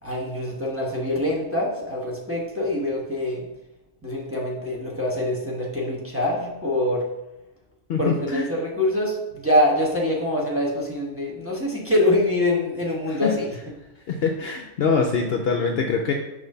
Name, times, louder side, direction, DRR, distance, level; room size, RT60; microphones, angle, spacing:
voice 1, 0.0-3.4 4.0-7.0 8.0-13.5, left 1 dB, 10° right, -3 dB, 0.9 m, -24 dB
voice 2, 7.9-8.5 13.1-13.4 14.1-16.1, left 5 dB, 60° left, 2 dB, 0.7 m, -24 dB
5.9 x 3.2 x 5.3 m, 0.96 s
omnidirectional pair, 1.4 m